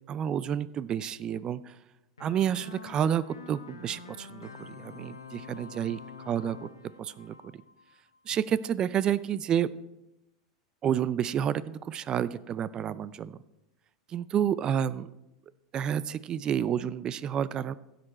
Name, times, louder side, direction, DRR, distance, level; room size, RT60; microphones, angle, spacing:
voice 1, 0.1-1.7 2.2-6.0 6.3-6.7 7.0-7.3 8.3-9.7 10.8-13.4 14.1-15.1 15.7-17.7, right 9 dB, 35° right, 18 dB, 0.4 m, -29 dB
sound 1, 2.2-8.3, left 5 dB, 90° left, 0.9 m, -47 dB
15.5 x 6.6 x 4.3 m, 0.94 s
hypercardioid pair, 85°, 2 cm